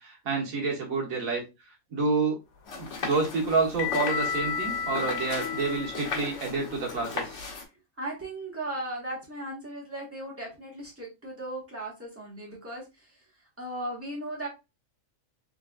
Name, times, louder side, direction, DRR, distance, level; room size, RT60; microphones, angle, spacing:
voice 1, 0.0-1.4 1.9-2.4 2.8-7.4, right 3 dB, 80° right, 0 dB, 1.6 m, -28 dB
sound 1, 2.7-7.5, left 6 dB, 80° left, 1.2 m, -34 dB
sound 2, 2.7-7.7, left 5 dB, 60° left, 1.3 m, -37 dB
voice 2, 8.0-13.1 13.6-14.5, right 1 dB, 10° right, -3 dB, 1.5 m, -37 dB
3.6 x 3.2 x 2.4 m, 0.25 s
omnidirectional pair, 1.5 m